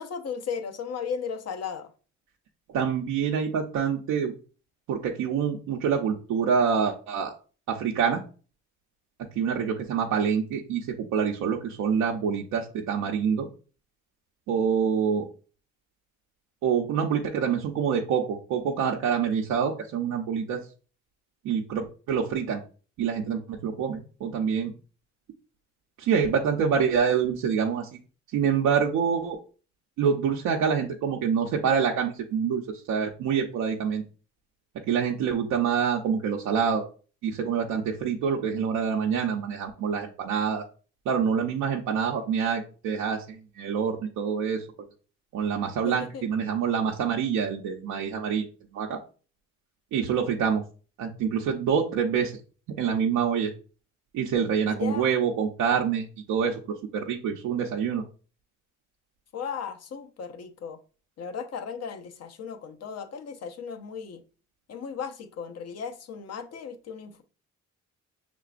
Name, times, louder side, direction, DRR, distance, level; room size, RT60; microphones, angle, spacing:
voice 1, 0.0-1.9 45.8-46.3 54.7-55.1 59.3-60.8 61.2-64.2 64.7-67.2, left 6 dB, 55° left, 8 dB, 0.8 m, -36 dB
voice 2, 2.7-4.3 4.9-7.3 7.7-8.2 9.4-10.9 11.1-13.5 14.5-15.3 16.6-20.6 21.4-22.6 23.0-24.7 26.0-27.9 28.3-29.4 30.0-34.0 34.9-36.8 37.2-40.6 41.1-44.6 45.3-48.5 48.7-49.0 49.9-50.6 51.0-52.3 52.8-53.5 54.1-56.5 56.9-58.0, right 7 dB, 90° right, -1 dB, 0.7 m, -26 dB
5.8 x 3.7 x 2.4 m, 0.37 s
cardioid pair, 90°, 30 cm